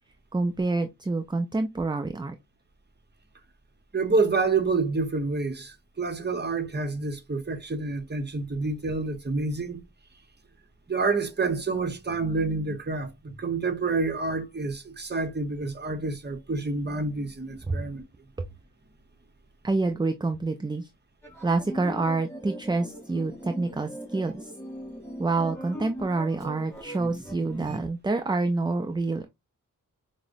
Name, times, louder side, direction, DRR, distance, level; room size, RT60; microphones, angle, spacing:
voice 1, 0.3-2.3 17.7-17.9 18.4-18.5 19.6-20.9 21.4-24.5 25.2-29.3, right 3 dB, 15° right, 0.4 m, -27 dB
voice 2, 3.9-9.8 10.9-18.0, right 3 dB, 30° right, 0.8 m, -28 dB
sound 1, 21.2-27.9, equal, 5° left, 2.1 m, -40 dB
4.8 x 2.1 x 2.5 m
wide cardioid pair, 75°, 34 cm